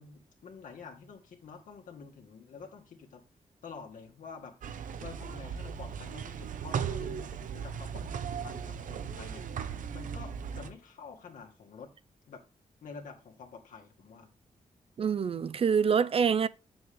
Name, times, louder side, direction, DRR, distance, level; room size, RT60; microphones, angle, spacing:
voice 1, 0.0-3.2 3.6-4.5 5.0-11.9 12.3-12.4 12.8-14.3, left 5 dB, 85° left, 1.9 m, -48 dB
sound 1, 4.6-10.7, right 7 dB, 80° right, 0.7 m, -37 dB
voice 2, 15.0-16.5, right 6 dB, 45° right, 0.4 m, -26 dB
8.5 x 7.0 x 3.6 m
wide cardioid pair, 105°, 13 cm